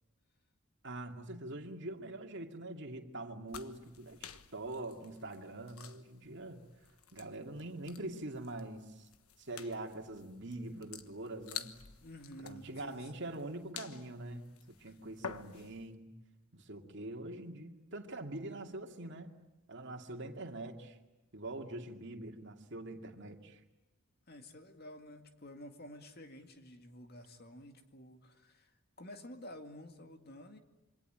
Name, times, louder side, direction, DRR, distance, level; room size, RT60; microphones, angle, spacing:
voice 1, 0.8-6.6 7.1-9.1 9.4-11.7 12.4-16.1 16.5-19.4 19.7-21.0 21.3-23.6, right 2 dB, 55° right, 4 dB, 2.5 m, -44 dB
sound 1, 3.5-15.9, left 7 dB, 85° left, 1.4 m, -51 dB
voice 2, 12.0-13.1 14.8-14.9 24.3-30.6, left 1 dB, 45° left, 6 dB, 2.3 m, -51 dB
27.0 x 24.5 x 9.0 m, 1.0 s
head